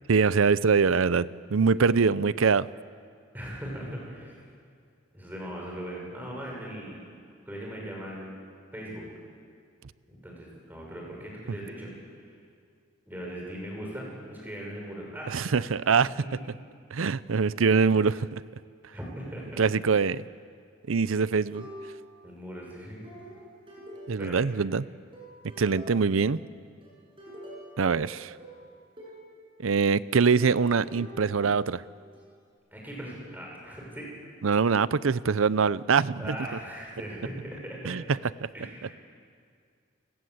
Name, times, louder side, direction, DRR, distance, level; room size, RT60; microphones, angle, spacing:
voice 1, 0.1-2.7 15.3-16.1 16.9-18.4 19.6-20.2 20.9-21.7 24.1-24.9 25.6-26.4 27.8-28.3 29.6-31.8 34.4-36.4 37.8-38.0 38.4-38.5, right 5 dB, 80° right, 18 dB, 0.6 m, -23 dB
voice 2, 3.3-4.4 5.1-7.0 7.5-8.3 8.7-9.1 10.1-11.9 13.1-15.4 18.9-20.0 22.2-23.0 24.2-24.4 32.7-34.1 36.2-38.1 38.5-39.0, equal, 10° right, -2 dB, 6.5 m, -39 dB
sound 1, 21.5-22.3 23.0-24.7 25.1-26.3 26.8-29.3 30.4-32.2, equal, 25° right, 7.6 m, -46 dB
30.0 x 19.0 x 8.1 m, 2.2 s
head